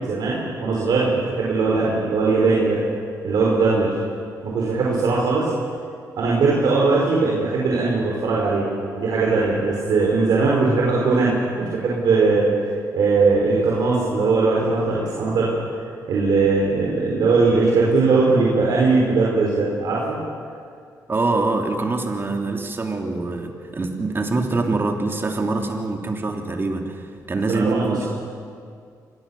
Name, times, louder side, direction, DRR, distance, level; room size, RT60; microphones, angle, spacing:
voice 1, 0.0-2.8 3.2-4.0 4.4-5.5 6.2-8.7 8.9-12.5 12.9-15.5 16.1-20.2 27.5-28.1, right 3 dB, 75° right, -4 dB, 4.9 m, -20 dB
voice 2, 21.1-28.0, right 3 dB, 35° right, 3 dB, 3.2 m, -24 dB
25.0 x 19.0 x 7.1 m, 2.2 s
cardioid pair, 75°, 7 cm